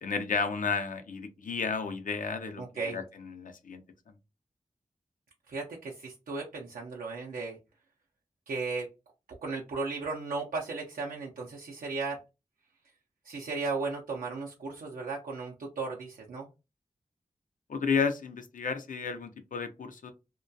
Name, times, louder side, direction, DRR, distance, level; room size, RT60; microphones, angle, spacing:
voice 1, 0.0-2.6 2.9-3.8 17.7-20.1, left 5 dB, 70° left, 8 dB, 0.5 m, -32 dB
voice 2, 2.6-3.0 5.5-7.6 8.5-8.9 9.4-12.2 13.2-16.5, right 4 dB, 90° right, -2 dB, 0.4 m, -35 dB
2.2 x 2.2 x 2.6 m, 0.27 s
cardioid pair, 50°, 14 cm